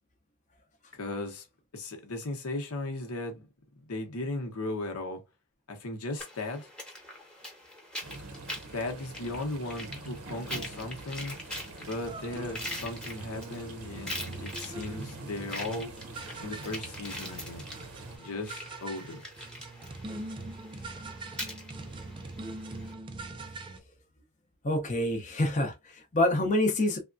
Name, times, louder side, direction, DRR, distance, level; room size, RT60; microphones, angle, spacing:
voice 1, 0.9-1.5 1.7-3.5 3.9-5.2 5.7-6.7 8.7-11.4 11.8-15.9 16.4-17.7 18.2-19.2, left 2 dB, 80° left, 0.8 m, -36 dB
sound 1, 6.2-22.9, left 1 dB, 5° left, 0.9 m, -43 dB
sound 2, 8.0-18.2, right 2 dB, 75° right, 0.7 m, -44 dB
sound 3, 12.0-23.8, right 2 dB, 20° right, 0.3 m, -43 dB
voice 2, 24.6-27.0, left 1 dB, 35° left, 0.6 m, -27 dB
3.4 x 2.2 x 2.5 m
head